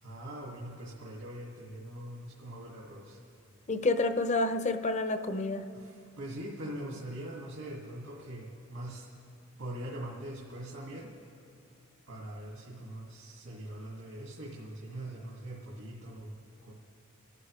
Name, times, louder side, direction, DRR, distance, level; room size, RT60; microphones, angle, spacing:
voice 1, 0.0-3.2 5.7-9.1 9.6-11.1 12.1-16.3 16.7-16.8, right 1 dB, 75° right, -4 dB, 2.2 m, -42 dB
voice 2, 3.7-5.7, left 2 dB, 35° left, 8 dB, 0.7 m, -29 dB
27.0 x 12.0 x 3.2 m, 2.7 s
head